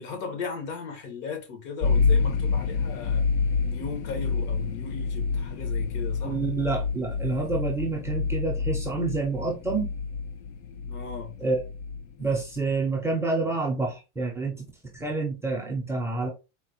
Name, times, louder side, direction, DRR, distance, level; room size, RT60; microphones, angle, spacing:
voice 1, 0.0-3.3 3.6-6.4 10.9-11.3, left 5 dB, 70° left, 1.4 m, -37 dB
sound 1, 1.8-12.8, left 4 dB, 55° left, 0.6 m, -28 dB
voice 2, 6.2-9.9 11.4-11.6 12.2-14.7 14.9-16.3, right 3 dB, 5° right, 0.5 m, -28 dB
4.0 x 2.1 x 2.9 m
supercardioid pair, 150°, 37 cm